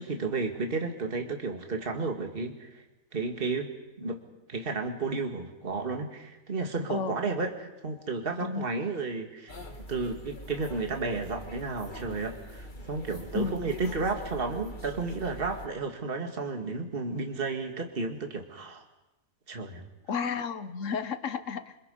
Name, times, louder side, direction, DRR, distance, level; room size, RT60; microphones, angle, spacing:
voice 1, 0.0-2.8 3.1-4.2 4.5-9.6 9.9-18.8 19.5-19.8, right 3 dB, 40° right, 4 dB, 2.2 m, -32 dB
voice 2, 6.9-7.2 8.4-8.7 13.3-13.6 20.1-21.8, left 5 dB, 60° left, 12 dB, 1.5 m, -32 dB
sound 1, 9.5-15.7, equal, 35° left, 1.9 m, -43 dB
27.5 x 25.0 x 5.5 m, 0.98 s
omnidirectional pair, 1.5 m